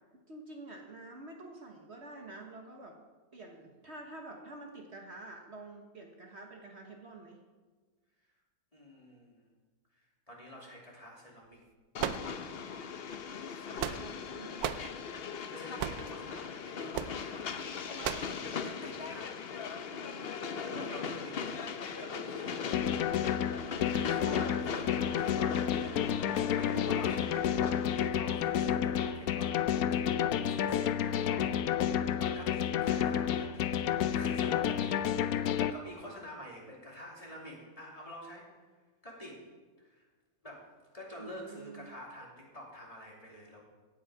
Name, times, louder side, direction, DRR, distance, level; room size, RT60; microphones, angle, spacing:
voice 1, 0.3-3.0 3.3-7.4 13.7-14.6 20.1-21.0 34.9-35.6 41.2-41.9, right 2 dB, 50° right, 1 dB, 1.5 m, -48 dB
voice 2, 8.7-9.4 10.3-11.6 13.5-14.0 15.5-17.4 17.8-19.8 20.6-22.9 23.2-31.6 32.2-35.3 35.6-38.5 39.0-39.4 39.8-40.0 40.4-40.7 40.9-43.7, equal, 25° left, -3 dB, 2.9 m, -48 dB
Train, 12.0-28.1, left 6 dB, 50° left, 0.9 m, -40 dB
sound 1, 12.0-12.8 13.5-14.2 14.6-14.9 15.8-16.1 16.9-17.2 18.0-18.4, right 10 dB, 90° right, 1.2 m, -35 dB
sound 2, 22.7-35.7, left 9 dB, 80° left, 1.1 m, -30 dB
17.0 x 8.7 x 4.9 m, 1.4 s
omnidirectional pair, 1.5 m